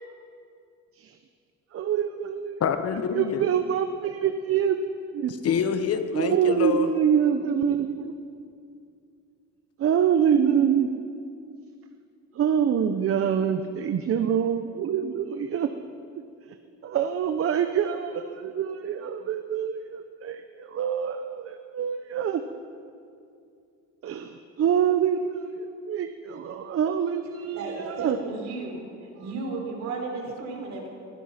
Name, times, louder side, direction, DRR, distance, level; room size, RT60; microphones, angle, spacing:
voice 1, 1.7-2.6 3.1-4.8 5.1-5.3 6.1-8.1 9.8-11.0 12.3-15.7 16.8-22.4 24.0-28.2 30.6-30.7, right 8 dB, 50° right, 8 dB, 0.8 m, -25 dB
voice 2, 2.6-3.4 5.4-6.9, left 7 dB, 55° left, 9 dB, 1.2 m, -26 dB
voice 3, 27.5-28.9 29.1-30.9, right 3 dB, 65° right, 1 dB, 3.9 m, -34 dB
21.0 x 11.5 x 5.8 m, 2.4 s
cardioid pair, 105°, 29 cm